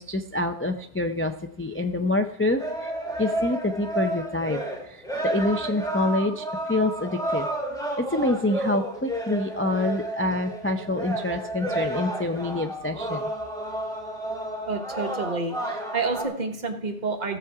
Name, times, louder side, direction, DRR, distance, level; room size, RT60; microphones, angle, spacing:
voice 1, 0.0-2.9 3.2-7.5 8.0-13.3, left 2 dB, 20° left, 5 dB, 0.3 m, -27 dB
sound 1, 2.6-16.2, right 1 dB, 5° left, 2.0 m, -31 dB
voice 2, 14.7-17.4, right 4 dB, 40° right, 4 dB, 1.2 m, -29 dB
15.5 x 7.0 x 4.8 m, 0.71 s
omnidirectional pair, 1.1 m